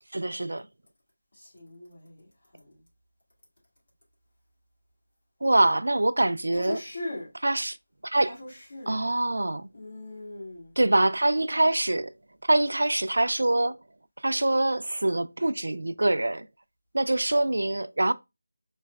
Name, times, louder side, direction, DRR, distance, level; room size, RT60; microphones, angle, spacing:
voice 1, 0.1-0.7 5.4-6.8 7.4-7.8 8.0-8.3 8.9-9.7 10.8-12.1 12.5-13.8 14.2-16.5 16.9-18.1, right 2 dB, 85° right, 0.3 m, -24 dB
voice 2, 1.3-2.8 6.5-7.3 8.2-9.0 9.7-10.7, left 2 dB, 50° left, 2.2 m, -40 dB
4.5 x 3.1 x 2.3 m
figure-of-eight pair, 180°, 0 cm